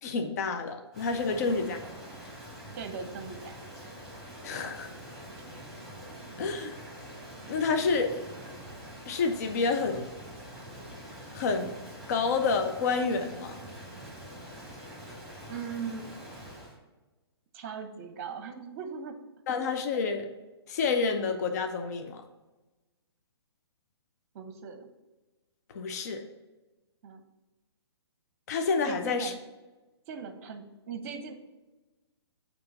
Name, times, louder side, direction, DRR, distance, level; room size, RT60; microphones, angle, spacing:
voice 1, 0.0-1.8 4.4-4.9 6.4-6.7 7.5-8.2 9.1-10.1 11.3-11.8 12.1-13.6 19.5-20.3 20.7-22.2 25.7-26.2 28.5-29.3, left 4 dB, 40° left, 6 dB, 0.5 m, -29 dB
Rain, 0.9-16.8, equal, ahead, 2.2 m, -45 dB
voice 2, 2.8-3.6 6.1-6.2 6.6-6.7 15.5-16.0 17.5-19.1 24.3-24.9 27.0-27.2 28.8-29.4 30.1-31.3, right 6 dB, 35° right, 7 dB, 0.8 m, -39 dB
7.8 x 3.0 x 5.7 m, 1.2 s
figure-of-eight pair, 125°, 14 cm